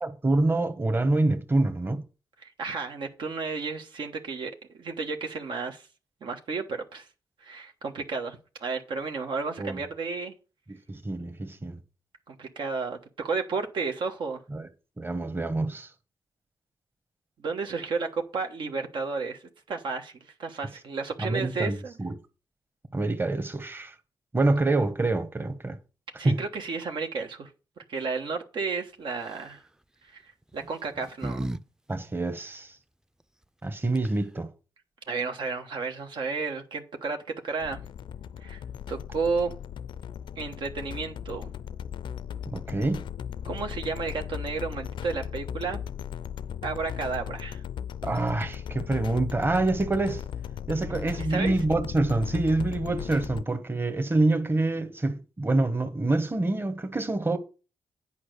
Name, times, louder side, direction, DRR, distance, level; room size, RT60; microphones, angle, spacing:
voice 1, 0.0-2.0 9.6-9.8 10.7-11.8 14.5-14.7 15.0-15.9 21.2-22.1 22.9-23.9 24.3-25.8 26.2-26.4 31.9-32.7 33.6-34.5 42.5-43.0 48.0-50.2 50.7-57.4, right 2 dB, 25° right, 1.3 m, -26 dB
voice 2, 2.4-4.5 4.8-5.9 6.2-7.1 7.4-10.3 12.3-14.4 17.4-19.4 19.7-20.1 20.4-21.9 26.2-27.5 27.9-29.6 30.1-31.5 35.1-37.2 37.4-37.8 38.4-38.6 38.9-39.5 40.4-41.5 43.4-45.8 46.6-47.6 51.3-51.6, right 4 dB, 80° right, 1.3 m, -32 dB
sound 1, 29.1-29.6 30.5-31.6 31.9-32.0 33.7-33.8 33.9-34.4, right 1 dB, 5° right, 0.5 m, -35 dB
sound 2, 37.6-53.4, left 9 dB, 80° left, 0.4 m, -37 dB
8.6 x 5.0 x 6.6 m
cardioid pair, 65°, 8 cm